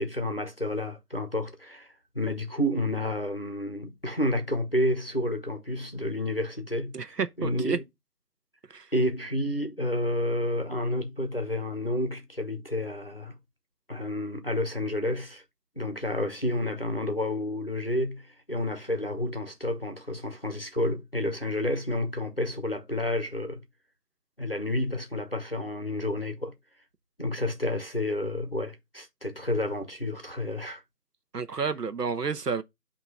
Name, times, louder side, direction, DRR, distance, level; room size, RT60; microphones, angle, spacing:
voice 1, 0.0-1.9 2.1-7.8 8.9-13.4 13.9-15.4 15.8-23.6 24.4-26.5 27.2-30.8, left 1 dB, 40° left, 0.8 m, -30 dB
voice 2, 6.9-7.8 8.7-8.9 31.3-32.6, right 5 dB, 80° right, 1.0 m, -30 dB
8.1 x 3.0 x 4.5 m
figure-of-eight pair, 180°, 47 cm